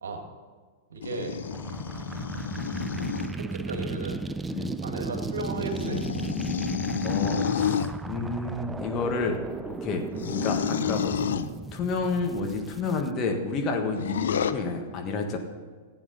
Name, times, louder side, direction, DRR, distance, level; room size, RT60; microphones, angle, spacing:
voice 1, 0.9-1.4 3.3-4.3 4.8-6.0, right 3 dB, 70° right, 3 dB, 2.0 m, -34 dB
sound 1, 1.0-3.3 4.9-7.9 10.1-11.5 13.9-14.5, left 8 dB, 70° left, 0.5 m, -30 dB
sound 2, 1.4-13.1, right 4 dB, 10° right, 0.4 m, -35 dB
voice 2, 7.0-9.4 9.8-10.0 10.3-11.4 11.7-15.4, left 4 dB, 35° left, 3 dB, 1.7 m, -30 dB
15.5 x 9.1 x 4.1 m, 1.5 s
figure-of-eight pair, 100°, 0 cm